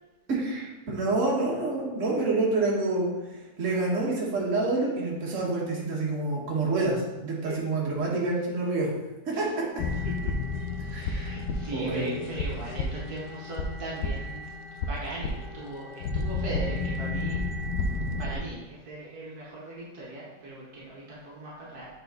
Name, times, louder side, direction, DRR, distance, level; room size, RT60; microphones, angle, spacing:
voice 1, 0.3-8.9 9.3-9.5 10.9-11.4 11.7-12.2, right 2 dB, 50° right, -4 dB, 1.8 m, -28 dB
alien wreckage exploration, 9.8-18.4, left 3 dB, 85° left, 1.3 m, -32 dB
voice 2, 10.8-14.5 14.8-17.4 18.2-21.9, right 2 dB, 65° right, -6 dB, 1.7 m, -39 dB
7.9 x 4.4 x 3.8 m, 1.1 s
omnidirectional pair, 1.8 m